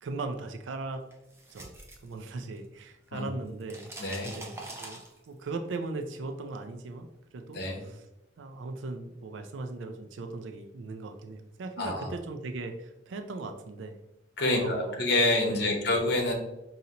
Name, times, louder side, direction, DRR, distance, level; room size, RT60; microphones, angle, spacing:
voice 1, 0.0-1.0 1.5-1.8 2.0-3.9 4.2-5.0 5.3-7.1 7.3-8.0 8.4-14.0 14.5-15.0 15.5-15.9, right 3 dB, 80° right, 6 dB, 0.4 m, -38 dB
sound 1, 1.1-2.8 3.1-5.5, right 2 dB, 15° right, 0.5 m, -44 dB
voice 2, 4.0-4.3 7.5-7.8 11.8-12.1 14.4-16.3, left 2 dB, 60° left, 0 dB, 0.9 m, -27 dB
5.1 x 2.8 x 2.8 m, 0.92 s
head